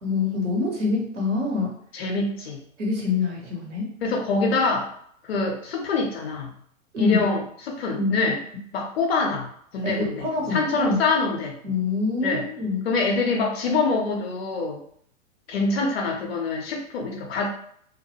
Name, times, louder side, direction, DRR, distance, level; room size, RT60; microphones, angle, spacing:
voice 1, 0.0-1.8 2.8-3.9 6.9-7.3 7.9-8.2 9.8-11.0 11.6-12.9, left 3 dB, 60° right, -1 dB, 1.1 m, -25 dB
voice 2, 1.9-2.6 4.0-4.9 5.3-6.5 7.0-8.4 8.7-9.5 9.7-11.5 12.2-12.4 12.8-14.8 15.5-17.5, left 3 dB, 50° left, 1 dB, 0.7 m, -25 dB
2.3 x 2.3 x 2.8 m, 0.66 s
figure-of-eight pair, 105°, 40 cm